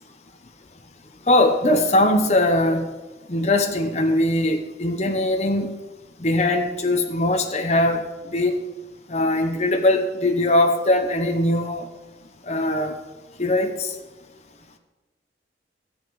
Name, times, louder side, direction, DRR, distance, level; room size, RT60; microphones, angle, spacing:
voice 1, 1.3-2.9 3.3-5.8 6.2-8.0 8.3-8.6 9.1-11.9 12.5-12.9 13.4-13.9, left 1 dB, 35° left, 5 dB, 0.9 m, -21 dB
13.0 x 8.1 x 4.8 m, 1.2 s
head